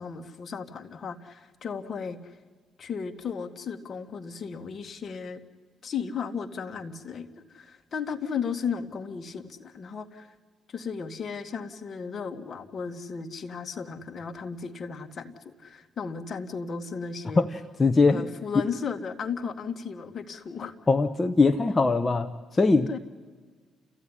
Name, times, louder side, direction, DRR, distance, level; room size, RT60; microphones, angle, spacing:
voice 1, 0.0-2.4 2.8-5.4 5.8-10.3 10.7-17.5 18.1-20.7 22.9-23.0, left 6 dB, 50° left, 7 dB, 1.8 m, -35 dB
voice 2, 17.4-18.2 20.9-22.9, left 3 dB, 25° left, 8 dB, 0.9 m, -22 dB
30.0 x 15.0 x 10.0 m, 1.5 s
cardioid pair, 90°, 0 cm